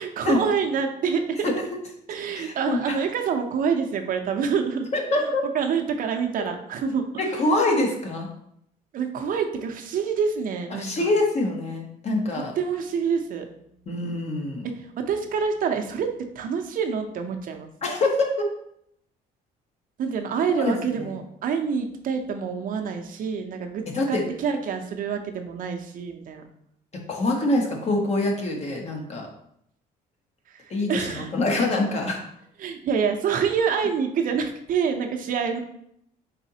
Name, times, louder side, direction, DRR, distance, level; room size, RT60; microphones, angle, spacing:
voice 1, 0.0-1.5 2.1-4.9 5.5-7.2 8.9-11.1 12.6-13.5 14.8-16.1 16.4-17.7 20.0-26.4 30.5-30.6 30.9-31.3 32.6-35.6, right 6 dB, 55° right, 5 dB, 0.6 m, -27 dB
voice 2, 2.3-3.0 4.9-5.4 6.4-6.5 7.2-8.3 10.7-12.5 13.9-14.7 17.8-18.4 20.5-21.1 23.9-24.2 26.9-29.3 30.7-32.2, left 2 dB, 40° left, 1 dB, 0.9 m, -25 dB
4.1 x 3.8 x 2.8 m, 0.73 s
cardioid pair, 110°, 17 cm